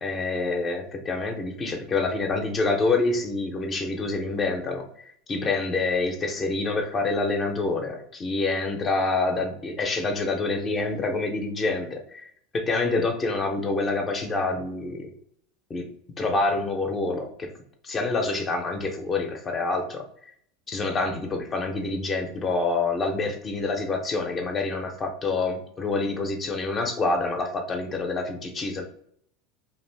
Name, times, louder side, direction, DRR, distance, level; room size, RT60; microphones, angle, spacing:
voice 1, 0.0-4.9 5.3-12.3 12.5-15.1 15.7-15.9 16.2-17.5 17.8-20.0 20.7-28.8, left 3 dB, 30° left, 4 dB, 0.6 m, -27 dB
2.5 x 2.4 x 3.3 m, 0.67 s
supercardioid pair, 105°, 0 cm